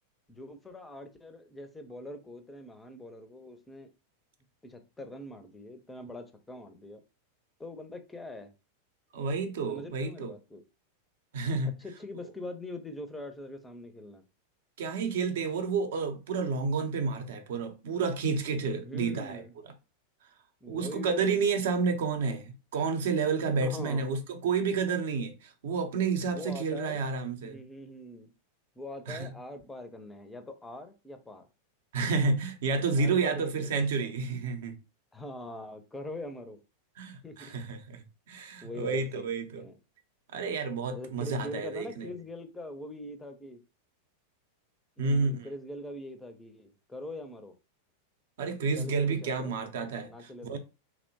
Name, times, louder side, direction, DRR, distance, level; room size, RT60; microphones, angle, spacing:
voice 1, 0.3-3.9 4.6-7.0 7.6-8.5 9.7-10.6 11.8-14.2 18.8-19.5 20.6-21.3 23.6-24.1 26.3-27.0 27.4-28.3 28.8-31.5 33.0-34.1 35.1-36.6 37.2-37.5 38.6-39.3 39.6-39.7 40.9-43.6 45.0-47.6 48.8-49.6 50.0-50.6, left 1 dB, 10° left, 0.4 m, -43 dB
voice 2, 9.1-10.3 11.3-11.7 14.8-19.4 20.7-27.6 29.1-29.3 31.9-34.7 37.0-39.6 40.3-42.1 45.0-45.5 48.4-50.1 50.4-50.6, right 4 dB, 55° right, 0.5 m, -30 dB
2.9 x 2.0 x 2.8 m
figure-of-eight pair, 90°, 0 cm